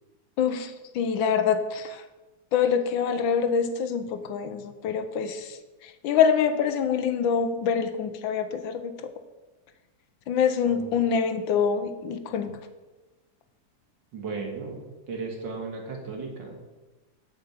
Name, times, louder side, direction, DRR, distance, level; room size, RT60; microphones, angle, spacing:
voice 1, 0.4-2.0 2.5-9.1 10.3-12.6, left 7 dB, 80° left, 9 dB, 1.5 m, -25 dB
voice 2, 14.1-16.7, right 4 dB, 70° right, 1 dB, 2.5 m, -36 dB
8.7 x 5.5 x 7.9 m, 1.2 s
omnidirectional pair, 2.1 m